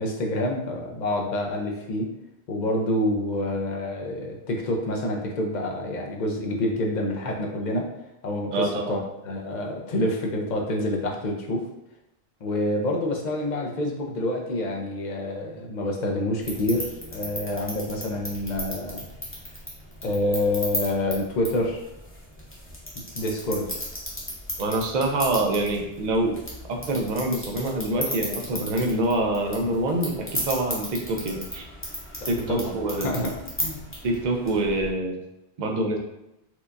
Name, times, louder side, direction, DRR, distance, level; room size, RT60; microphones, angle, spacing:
voice 1, 0.0-2.1 2.5-7.9 8.2-9.0 9.2-11.6 12.4-19.1 20.0-21.8 23.1-23.8 32.3-32.7 33.0-33.3 33.6-33.8, left 1 dB, 50° left, 0 dB, 0.7 m, -27 dB
voice 2, 8.5-9.0 24.6-26.4 26.7-31.6 32.3-33.3 34.0-35.2 35.6-36.0, right 2 dB, 55° right, 2 dB, 0.6 m, -26 dB
sound 1, 16.4-34.9, equal, 15° left, 0.7 m, -36 dB
4.4 x 2.3 x 2.5 m, 0.87 s
omnidirectional pair, 1.0 m